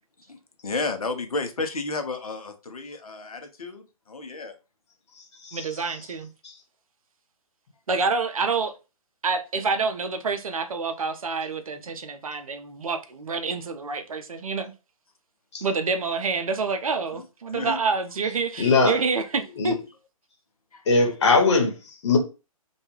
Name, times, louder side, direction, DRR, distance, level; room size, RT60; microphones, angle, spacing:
voice 1, 0.6-4.5 17.5-17.8 20.7-20.8, left 3 dB, 75° left, 0.6 m, -32 dB
voice 2, 5.5-6.3 7.9-8.7 9.2-14.7 15.6-19.8, right 4 dB, 70° right, 0.5 m, -27 dB
voice 3, 18.6-18.9 19.6-19.7 20.9-22.2, left 3 dB, 50° left, 1.0 m, -20 dB
2.3 x 2.2 x 3.0 m
figure-of-eight pair, 135°, 19 cm